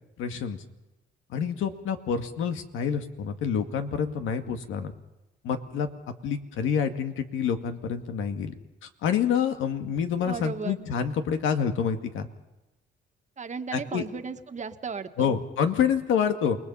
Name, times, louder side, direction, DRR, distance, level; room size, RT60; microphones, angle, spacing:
voice 1, 0.2-0.6 1.3-4.9 5.4-8.6 8.8-12.3 13.7-14.1 15.2-16.6, left 7 dB, 85° left, 7 dB, 2.1 m, -27 dB
voice 2, 10.2-10.9 13.4-15.4, right 5 dB, 35° right, 7 dB, 1.7 m, -35 dB
29.0 x 20.5 x 5.6 m, 0.98 s
cardioid pair, 90°, 20 cm